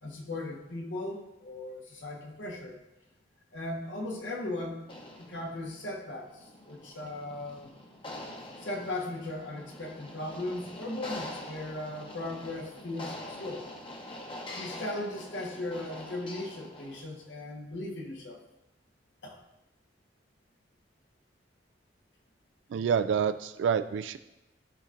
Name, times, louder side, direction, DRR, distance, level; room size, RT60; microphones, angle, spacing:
voice 1, 0.0-2.8 3.5-4.8 5.2-7.7 8.6-13.7 14.5-18.4 19.2-19.4, left 2 dB, 85° left, 1 dB, 1.3 m, -37 dB
sound 1, 4.8-17.2, left 1 dB, 30° left, 0.9 m, -44 dB
voice 2, 22.7-24.2, right 7 dB, 90° right, 12 dB, 0.3 m, -27 dB
13.0 x 5.7 x 2.5 m, 0.95 s
head